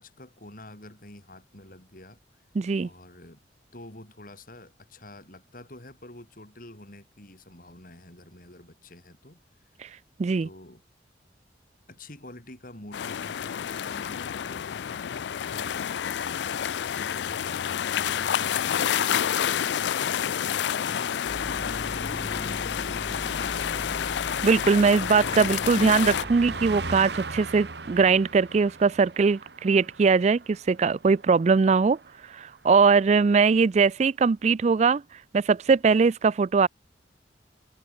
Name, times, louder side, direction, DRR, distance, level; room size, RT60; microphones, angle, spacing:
voice 1, 0.0-2.2 2.8-3.4 3.7-9.4 10.4-10.8 11.9-19.6 20.0-23.9, left 1 dB, 50° left, 6.0 m, -48 dB
voice 2, 2.6-2.9 9.8-9.9 10.2-10.5 24.4-32.0 32.3-35.0 35.3-36.7, right 5 dB, 40° right, 0.3 m, -21 dB
sound 1, 12.9-26.2, left 9 dB, 75° left, 0.4 m, -29 dB
Car passing by, 20.8-32.6 32.9-33.2, right 4 dB, 70° right, 1.8 m, -42 dB
sound 2, 21.3-27.0, equal, 35° left, 3.5 m, -39 dB
head